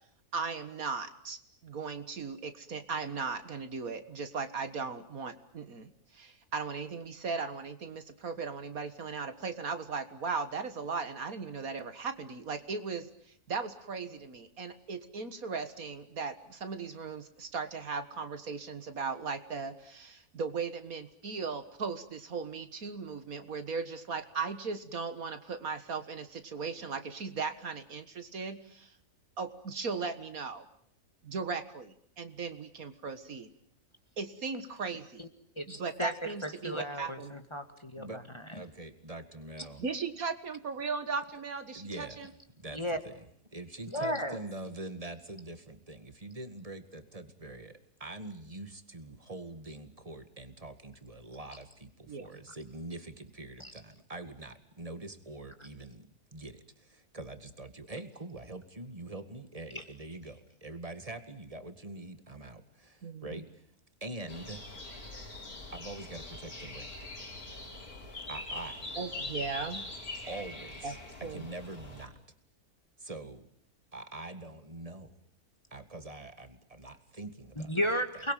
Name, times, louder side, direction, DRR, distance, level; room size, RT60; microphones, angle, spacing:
voice 1, 0.3-13.1 13.5-28.9 29.4-30.6 31.2-33.5 34.2-35.3 35.7-37.3 39.8-42.3 52.1-52.3 63.0-63.4 69.0-69.8 70.8-70.9 71.2-71.5, right 5 dB, 70° right, 10 dB, 2.1 m, -37 dB
voice 2, 35.6-36.1 36.4-38.2 42.7-43.0 43.9-44.4 53.6-53.7 59.8-59.9 77.6-78.3, equal, 20° left, 6 dB, 2.1 m, -34 dB
voice 3, 38.5-39.8 41.7-42.3 42.6-63.6 64.0-64.6 65.7-67.0 68.3-68.9 70.3-71.0 71.3-72.1 73.0-73.5 73.9-75.1 75.7-77.9, right 2 dB, 25° right, 9 dB, 2.1 m, -44 dB
sound 1, 64.3-72.1, left 2 dB, 85° left, 5.3 m, -43 dB
29.0 x 21.5 x 9.2 m, 0.64 s
omnidirectional pair, 1.6 m